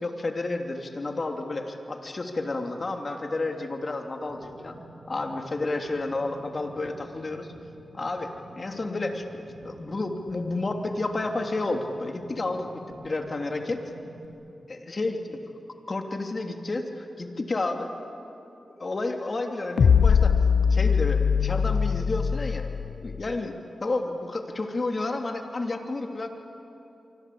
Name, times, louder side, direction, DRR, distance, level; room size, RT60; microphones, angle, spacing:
voice 1, 0.0-4.8 5.1-7.5 7.9-12.7 13.0-13.8 14.7-15.2 15.9-17.9 18.8-20.4 20.7-22.7 23.0-26.3, left 2 dB, 45° left, 4 dB, 3.1 m, -31 dB
sound 1, 4.3-14.3, right 2 dB, 85° right, 4.2 m, -49 dB
sound 2, 19.8-23.2, left 6 dB, 75° left, 0.7 m, -21 dB
26.5 x 25.0 x 8.6 m, 2.9 s
cardioid pair, 45°, 0 cm